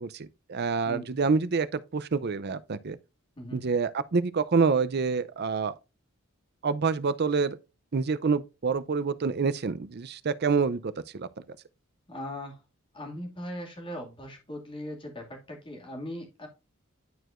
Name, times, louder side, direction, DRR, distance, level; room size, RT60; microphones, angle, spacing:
voice 1, 0.0-3.0 3.5-5.8 6.6-7.6 7.9-11.3, right 4 dB, 50° right, 0.5 m, -27 dB
voice 2, 0.8-1.3 3.4-3.6 12.1-12.6 12.9-16.5, equal, 25° left, 2.2 m, -39 dB
11.0 x 4.7 x 2.5 m
head